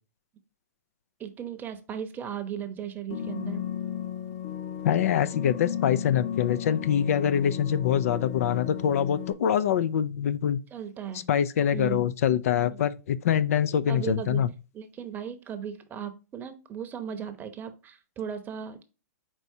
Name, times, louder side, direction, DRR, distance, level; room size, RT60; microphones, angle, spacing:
voice 1, 1.2-3.6 10.7-11.3 11.7-12.1 12.7-12.8 13.9-14.4 14.7-18.8, right 9 dB, 20° right, 0.8 m, -36 dB
sound 1, 3.1-9.3, left 9 dB, 40° left, 0.8 m, -35 dB
voice 2, 4.8-10.6 11.3-14.5, left 9 dB, 60° left, 0.4 m, -24 dB
4.6 x 4.2 x 2.7 m
hypercardioid pair, 120°, 9 cm